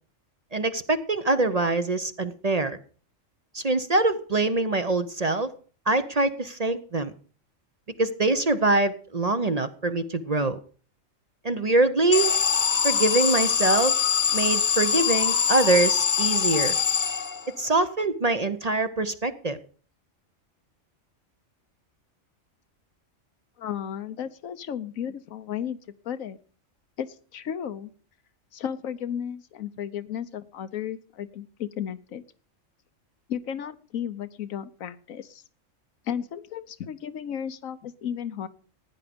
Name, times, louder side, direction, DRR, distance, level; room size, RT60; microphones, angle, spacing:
voice 1, 0.5-2.8 3.5-5.5 5.9-7.1 8.0-10.6 11.4-12.3 12.8-13.9 14.3-16.8 17.6-19.6, right 2 dB, 35° right, 11 dB, 0.7 m, -24 dB
Alarm, 12.1-17.7, left 7 dB, 45° left, 0.9 m, -23 dB
voice 2, 23.6-25.8 26.0-26.4 27.0-27.9 28.5-32.2 33.3-35.4 36.1-38.5, left 9 dB, 90° left, 13 dB, 1.3 m, -34 dB
15.0 x 9.9 x 5.2 m, 0.42 s
omnidirectional pair, 1.4 m